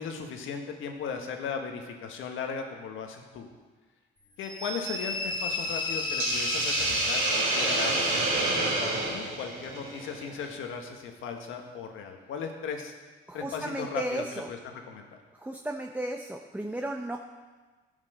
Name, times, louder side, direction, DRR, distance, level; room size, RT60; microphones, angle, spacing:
voice 1, 0.0-3.5 4.4-12.9 13.3-15.2, left 6 dB, 85° left, 3 dB, 1.5 m, -37 dB
sound 1, 4.4-8.6, left 3 dB, 20° left, 1.7 m, -33 dB
Hiss, 6.2-10.5, right 2 dB, 85° right, 3.0 m, -28 dB
voice 2, 13.3-14.5 15.4-17.2, right 1 dB, 10° right, 3 dB, 0.8 m, -34 dB
11.5 x 7.3 x 6.6 m, 1.3 s
cardioid pair, 90°, 20 cm